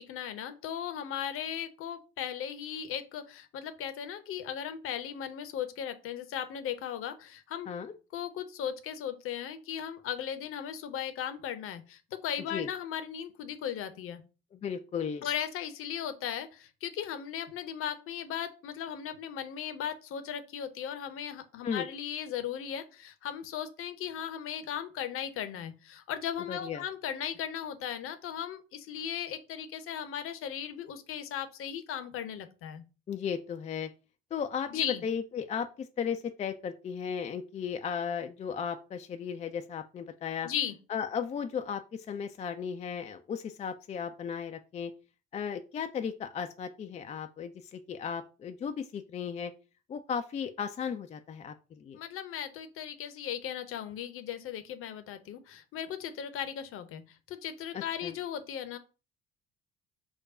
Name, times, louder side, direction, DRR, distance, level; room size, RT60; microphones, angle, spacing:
voice 1, 0.0-7.7 8.1-14.2 15.2-32.8 34.7-35.0 40.4-40.7 51.9-58.8, left 9 dB, 45° left, 0.7 m, -37 dB
voice 2, 14.6-15.3 21.6-21.8 26.5-26.8 33.1-33.9 34.3-40.5 40.9-44.9 45.3-49.5 49.9-52.0 57.7-58.1, left 7 dB, 20° left, 0.4 m, -35 dB
4.8 x 2.2 x 4.8 m
figure-of-eight pair, 55°, 30 cm